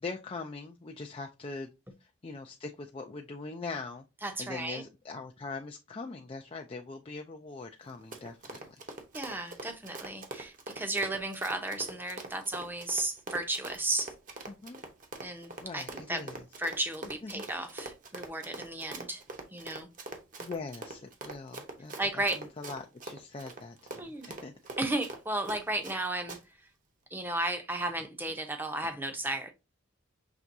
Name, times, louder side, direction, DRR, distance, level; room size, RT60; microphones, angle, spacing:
voice 1, 0.0-1.7 2.0-4.0 4.4-8.8 14.5-14.8 15.6-16.4 17.2-17.4 20.4-24.5, left 3 dB, 25° left, 0.4 m, -42 dB
voice 2, 4.2-4.8 9.1-14.1 15.2-16.3 16.6-19.2 19.5-19.9 22.0-22.4 24.0-24.4 24.8-26.7 27.1-29.5, right 2 dB, 10° right, 0.7 m, -34 dB
Run, 7.8-26.0 26.3-26.4, right 2 dB, 40° right, 0.9 m, -43 dB
6.0 x 3.4 x 2.6 m
head